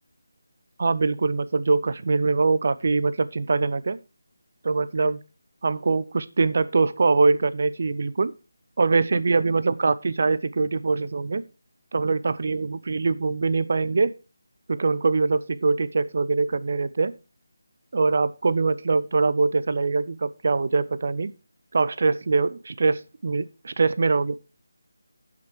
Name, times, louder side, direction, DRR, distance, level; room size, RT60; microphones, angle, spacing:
voice 1, 0.8-4.0 4.6-5.2 5.6-8.3 8.8-11.4 11.9-14.1 14.7-17.1 17.9-21.3 21.7-24.4, right 4 dB, 35° right, 16 dB, 0.4 m, -23 dB
10.0 x 5.9 x 4.6 m, 0.33 s
figure-of-eight pair, 180°, 0 cm